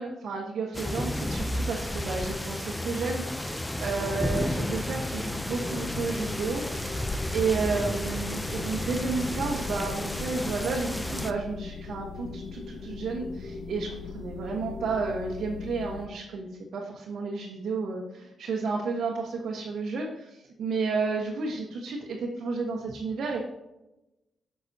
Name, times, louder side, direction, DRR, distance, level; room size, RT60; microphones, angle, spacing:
voice 1, 0.0-3.4 3.8-7.1 7.3-23.4, right 4 dB, 70° right, -2 dB, 1.2 m, -32 dB
sound 1, 0.7-11.3, left 1 dB, 10° left, 0.5 m, -32 dB
sound 2, 5.5-16.1, left 5 dB, 60° left, 0.9 m, -40 dB
9.7 x 6.1 x 2.8 m, 0.94 s
cardioid pair, 90°, 0 cm